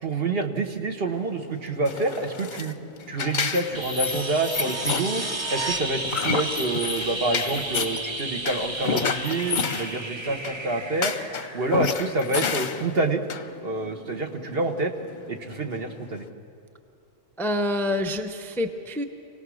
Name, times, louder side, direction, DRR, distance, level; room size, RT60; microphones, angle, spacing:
voice 1, 0.0-2.7 3.1-5.2 5.5-11.1 11.5-13.2 13.6-14.9 15.3-16.3, right 2 dB, 50° right, 4 dB, 1.4 m, -27 dB
sound 1, 1.1-16.3, left 6 dB, 45° left, 0.8 m, -31 dB
sound 2, 3.7-12.4 14.8-14.9, right 2 dB, 25° right, 0.9 m, -33 dB
voice 2, 17.4-19.0, left 1 dB, ahead, 6 dB, 0.6 m, -27 dB
25.0 x 18.0 x 6.3 m, 2.5 s
omnidirectional pair, 1.3 m